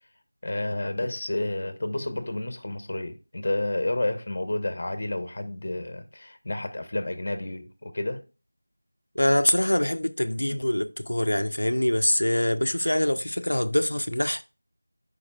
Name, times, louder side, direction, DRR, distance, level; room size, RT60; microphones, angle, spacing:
voice 1, 0.4-8.2, left 1 dB, 40° left, 1.1 m, -30 dB
voice 2, 9.2-14.4, left 1 dB, 75° left, 0.6 m, -24 dB
12.5 x 5.3 x 2.4 m
figure-of-eight pair, 170°, 0 cm